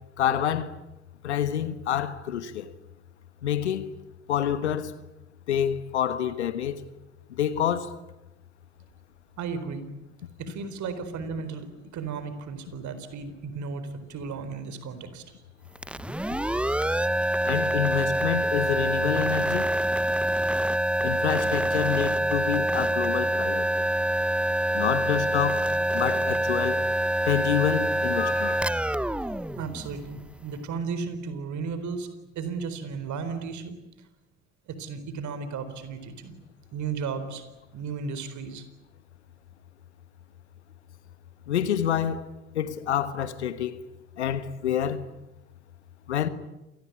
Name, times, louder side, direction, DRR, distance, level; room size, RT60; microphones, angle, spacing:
voice 1, 0.2-0.7 1.2-2.7 3.4-3.9 4.3-4.9 5.5-6.8 7.3-7.9 17.4-19.7 21.0-23.7 24.7-26.8 27.2-28.7 41.5-42.3 42.5-43.8 44.2-45.1 46.1-46.3, left 9 dB, 85° left, 1.4 m, -27 dB
voice 2, 9.4-9.9 10.4-11.7 11.9-15.2 29.6-33.8 34.7-36.4 36.7-37.4 37.7-38.7, right 5 dB, 60° right, 4.2 m, -34 dB
sound 1, 15.8-30.4, right 1 dB, 5° right, 0.8 m, -26 dB
28.0 x 19.5 x 9.6 m
hypercardioid pair, 55°, 33 cm